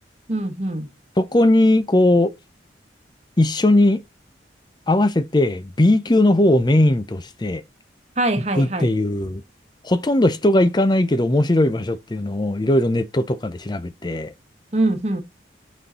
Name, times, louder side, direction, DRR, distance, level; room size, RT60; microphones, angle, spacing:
voice 1, 0.3-0.9 8.2-8.9 14.7-15.2, right 2 dB, 35° right, 1.2 m, -23 dB
voice 2, 1.2-2.3 3.4-4.0 4.9-7.6 8.5-9.4 9.8-14.3, left 1 dB, 25° left, 0.5 m, -18 dB
6.2 x 5.5 x 4.1 m
head